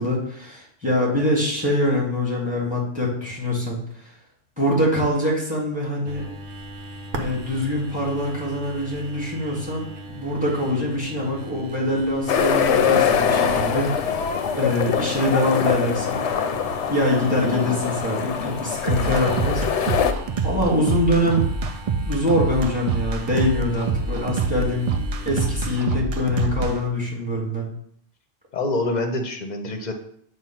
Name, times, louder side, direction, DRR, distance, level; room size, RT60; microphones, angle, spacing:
voice 1, 0.0-3.8 4.6-6.2 7.1-16.2 16.9-19.6 20.4-21.4 22.1-24.9 25.3-27.7, left 1 dB, 5° right, -3 dB, 1.8 m, -24 dB
sound 1, 6.1-25.8, right 2 dB, 85° right, 1.1 m, -40 dB
sound 2, 12.3-20.1, left 7 dB, 70° left, 0.9 m, -23 dB
voice 2, 17.3-17.8 28.5-29.9, left 2 dB, 40° left, 5 dB, 0.8 m, -27 dB
sound 3, 18.9-26.7, right 4 dB, 70° right, 0.3 m, -25 dB
7.6 x 2.6 x 5.8 m, 0.66 s
omnidirectional pair, 1.3 m